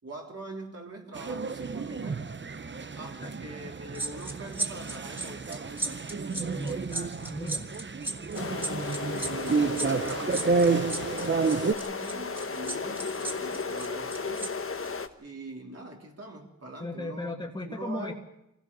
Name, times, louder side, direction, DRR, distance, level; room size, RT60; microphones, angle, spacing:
voice 1, 0.0-2.3 2.9-6.0 9.0-14.6 15.2-17.3 17.6-18.1, right 2 dB, 55° right, 0 dB, 3.4 m, -43 dB
sound 1, 1.1-11.7, right 4 dB, 40° right, 0.8 m, -30 dB
sound 2, 3.9-14.5 14.8-15.0, right 2 dB, 5° right, 2.8 m, -36 dB
voice 2, 6.5-7.7 16.8-18.1, left 1 dB, 15° left, -1 dB, 2.0 m, -37 dB
sound 3, 8.3-15.1, left 4 dB, 45° left, 1.2 m, -34 dB
24.5 x 16.5 x 6.9 m, 0.83 s
wide cardioid pair, 85°, 30 cm